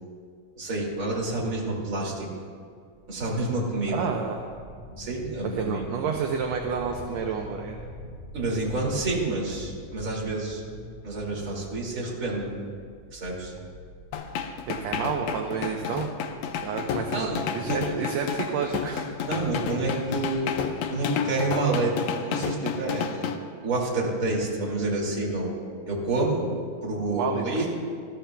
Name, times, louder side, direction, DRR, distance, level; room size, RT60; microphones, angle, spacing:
voice 1, 0.6-2.3 3.1-4.1 5.0-5.8 8.3-10.6 11.0-12.5 13.1-13.5 17.1-17.8 19.3-20.5 20.9-21.9 22.2-23.3 23.6-25.5 25.9-26.5 26.8-27.7, right 2 dB, 30° right, -4 dB, 2.4 m, -28 dB
sound 1, 2.9-20.8, left 1 dB, 5° right, 0.4 m, -46 dB
voice 2, 3.9-4.4 5.4-7.8 14.7-16.1 16.6-17.3 17.5-19.0 27.1-27.7, right 6 dB, 70° right, 2 dB, 1.7 m, -30 dB
sound 2, 14.1-23.4, left 7 dB, 75° left, 1.6 m, -31 dB
20.5 x 13.5 x 2.3 m, 2.2 s
omnidirectional pair, 3.5 m